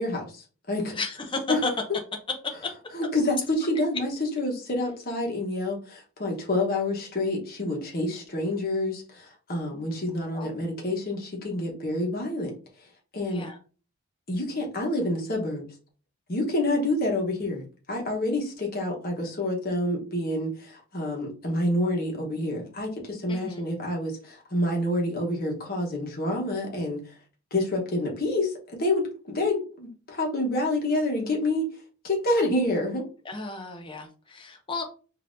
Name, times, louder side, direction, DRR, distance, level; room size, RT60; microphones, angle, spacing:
voice 1, 0.0-0.9 1.5-1.6 2.9-4.1 4.4-12.5 13.1-13.4 14.3-15.6 16.3-27.0 27.5-31.7 32.0-33.0, left 1 dB, 40° left, 0 dB, 1.1 m, -28 dB
voice 2, 0.9-1.7 10.3-10.5 13.3-13.6 23.3-23.6 33.2-34.8, left 3 dB, 20° left, 3 dB, 0.6 m, -33 dB
5.2 x 2.7 x 2.6 m, 0.37 s
head